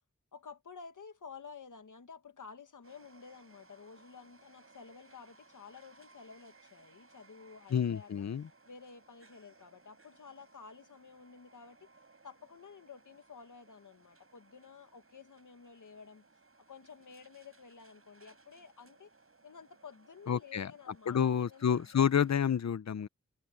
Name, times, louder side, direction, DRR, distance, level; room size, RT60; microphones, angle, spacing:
voice 1, 0.3-8.2 8.6-11.9 12.2-16.2 16.7-19.1 19.4-22.1, left 5 dB, 90° left, 1.5 m, -52 dB
sound 1, 2.8-22.4, right 3 dB, 50° right, 4.7 m, -63 dB
voice 2, 7.7-8.4 20.3-20.7 21.1-23.1, left 8 dB, 65° left, 0.7 m, -29 dB
wide cardioid pair, 65°, 30 cm